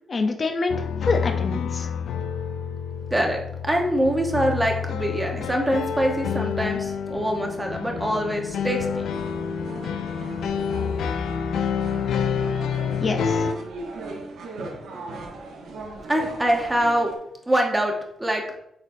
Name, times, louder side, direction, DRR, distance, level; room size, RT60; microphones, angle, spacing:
voice 1, 0.1-0.7 1.0-1.9 13.0-13.5, left 3 dB, 35° left, 5 dB, 0.8 m, -26 dB
sound 1, 0.7-13.5, left 7 dB, 80° left, 0.4 m, -28 dB
voice 2, 3.1-9.0 16.1-17.1 17.5-17.9 18.2-18.4, right 1 dB, 10° right, 1 dB, 1.1 m, -24 dB
sound 2, 8.8-17.1, right 2 dB, 90° right, 1.1 m, -39 dB
8.6 x 4.1 x 2.7 m, 0.78 s
cardioid pair, 140°, 0 cm